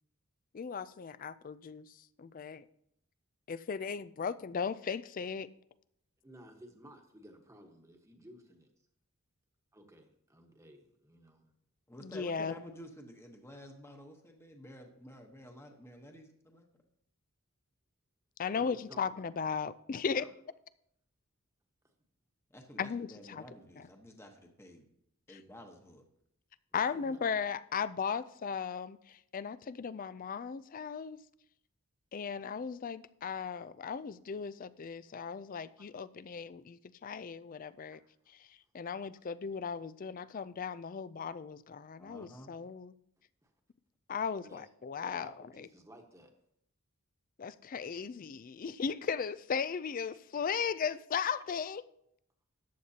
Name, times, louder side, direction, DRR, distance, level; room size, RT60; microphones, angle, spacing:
voice 1, 0.5-1.9 2.2-2.6 3.5-5.5 12.0-12.5 18.4-20.2 22.8-23.4 26.7-31.2 32.1-38.0 38.7-42.9 44.1-45.7 47.4-51.8, left 6 dB, 40° left, 17 dB, 0.4 m, -37 dB
voice 2, 6.2-8.7 9.7-11.5 18.5-19.3 20.1-20.3 21.8-21.9 26.7-27.2 37.9-38.0 43.4-43.5 44.4-44.7 45.0-46.3, equal, 15° right, 3 dB, 1.2 m, -55 dB
voice 3, 11.9-16.7 22.5-24.9 25.3-26.0 42.0-42.5, equal, 10° left, 3 dB, 1.1 m, -51 dB
14.0 x 9.5 x 2.8 m, 0.74 s
head